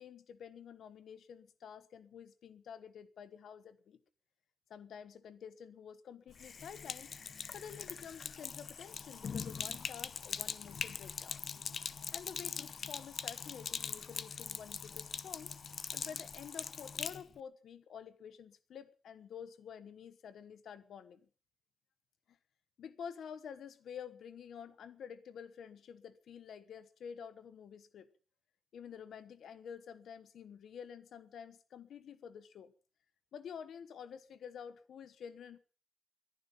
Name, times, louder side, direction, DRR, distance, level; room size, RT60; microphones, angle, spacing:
voice 1, 0.0-4.0 4.7-7.1 7.5-11.4 12.1-15.6 15.9-21.2 22.3-22.4 22.8-28.1 28.7-32.7 33.3-35.6, left 7 dB, 90° left, 1.2 m, -49 dB
Sink (filling or washing), 6.3-17.2, left 6 dB, 45° left, 0.7 m, -42 dB
21.5 x 11.0 x 5.6 m
wide cardioid pair, 180°, 0 cm